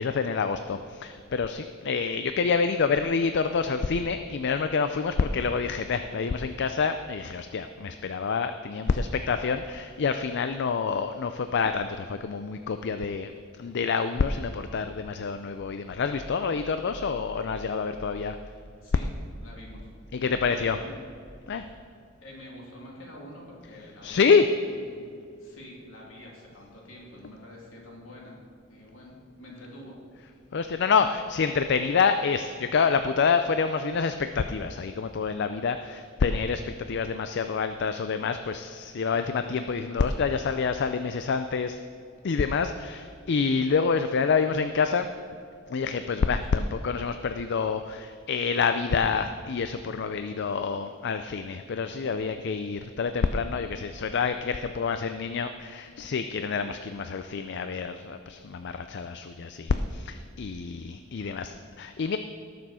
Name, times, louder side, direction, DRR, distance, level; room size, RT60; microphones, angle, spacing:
voice 1, 0.0-13.3 13.6-18.4 20.1-20.8 21.5-21.6 24.0-24.4 30.5-41.8 42.2-45.1 45.7-62.2, left 5 dB, 55° left, 9 dB, 0.4 m, -27 dB
voice 2, 8.7-9.1 18.8-19.1 19.4-19.9 20.2-21.0 21.5-21.9 22.2-25.1 25.4-28.4 28.7-30.0 39.9-40.0 46.5-46.7 61.2-61.5, left 1 dB, 75° left, -3 dB, 3.0 m, -47 dB
sound 1, 15.6-21.8, right 1 dB, 40° right, 1.9 m, -47 dB
18.5 x 6.9 x 4.3 m, 2.4 s
head